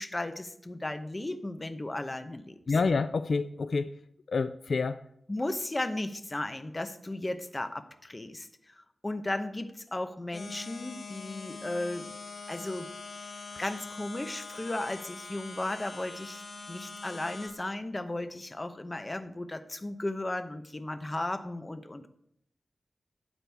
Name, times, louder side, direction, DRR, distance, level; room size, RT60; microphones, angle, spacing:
voice 1, 0.0-2.6 5.3-12.1 12.5-12.9 13.6-16.4 16.7-22.1, left 1 dB, 20° left, 8 dB, 0.8 m, -35 dB
voice 2, 2.7-3.9 4.3-5.0, left 4 dB, 60° left, 12 dB, 0.4 m, -28 dB
sound 1, 10.3-17.5, left 4 dB, 80° left, 1.7 m, -43 dB
12.5 x 8.9 x 3.5 m, 0.72 s
wide cardioid pair, 135°, 0 cm